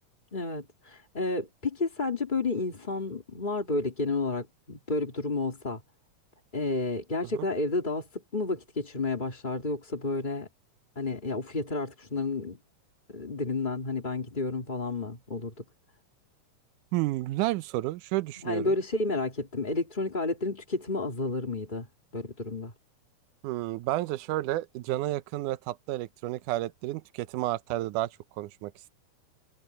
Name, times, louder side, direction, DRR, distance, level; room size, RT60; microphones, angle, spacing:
voice 1, 0.3-5.8 6.5-10.5 11.0-12.6 13.1-15.6 18.4-21.9 22.1-22.7, left 3 dB, 15° left, 2.1 m, -31 dB
voice 2, 16.9-18.8 23.4-28.1 28.4-28.9, right 16 dB, 75° right, 2.2 m, -31 dB
omnidirectional pair, 3.7 m